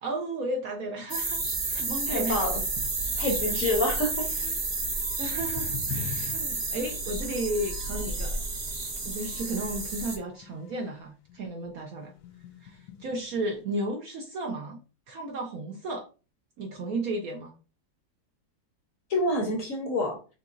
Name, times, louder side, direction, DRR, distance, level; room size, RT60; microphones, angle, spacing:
voice 1, 0.0-2.5 3.4-3.6 4.2-4.6 5.2-8.4 9.0-12.1 12.6-14.8 15.1-16.1 16.6-17.5, right 1 dB, 65° right, 3 dB, 0.9 m, -34 dB
sound 1, 1.1-10.2, right 3 dB, 85° right, 0.3 m, -31 dB
voice 2, 2.1-2.6 3.2-4.3 19.1-20.2, left 1 dB, 55° left, 2 dB, 1.1 m, -27 dB
sound 2, 5.0-8.4 8.7-11.0 11.3-11.5 11.8-13.6, left 7 dB, 90° left, 1.4 m, -43 dB
6.5 x 2.9 x 2.5 m, 0.34 s
omnidirectional pair, 2.1 m